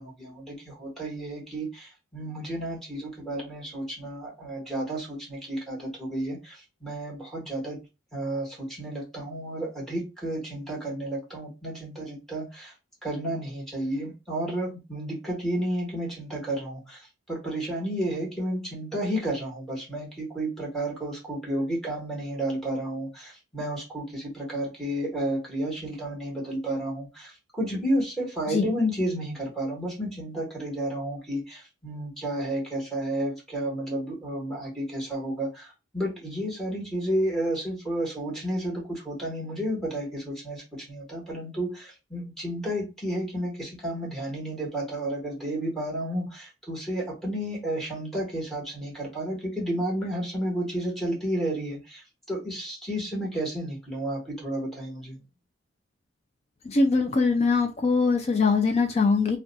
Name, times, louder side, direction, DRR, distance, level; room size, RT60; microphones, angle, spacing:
voice 1, 0.0-7.8 8.1-12.7 13.0-55.2, right 1 dB, ahead, 1.1 m, -31 dB
voice 2, 56.7-59.4, left 4 dB, 35° left, 0.3 m, -22 dB
2.5 x 2.2 x 3.9 m
head